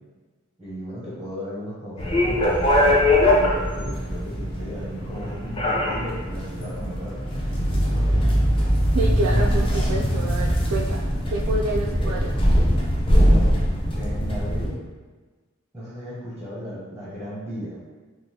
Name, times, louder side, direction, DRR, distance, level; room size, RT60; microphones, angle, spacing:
voice 1, 0.6-7.2 7.5-8.3 13.1-13.6 13.9-14.8 15.7-17.8, equal, 5° right, -8 dB, 0.7 m, -35 dB
sound 1, 2.0-14.7, equal, 25° left, 0.5 m, -21 dB
voice 2, 8.9-12.4, right 2 dB, 75° right, -3 dB, 0.3 m, -28 dB
3.7 x 2.5 x 2.8 m, 1.4 s
head